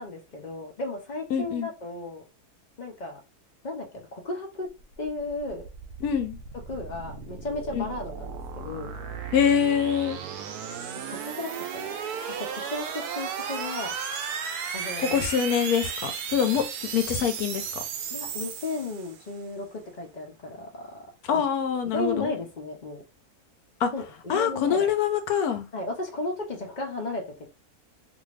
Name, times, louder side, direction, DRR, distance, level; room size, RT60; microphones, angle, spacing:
voice 1, 0.0-2.2 2.8-3.2 3.6-4.7 5.0-5.7 6.7-8.9 10.9-12.0 12.3-13.9 14.7-15.2 18.1-20.9 21.3-21.4 21.9-23.0 23.9-24.9 25.7-27.5, left 2 dB, 45° left, 0.6 m, -34 dB
voice 2, 1.3-1.7 6.0-6.4 7.7-7.8 9.3-10.2 15.0-16.7 16.9-17.8 21.2-22.3 23.8-23.9 24.3-25.7, left 8 dB, 80° left, 1.1 m, -25 dB
sound 1, 4.8-19.4, right 7 dB, 80° right, 1.1 m, -35 dB
2.7 x 2.6 x 3.2 m
omnidirectional pair, 1.6 m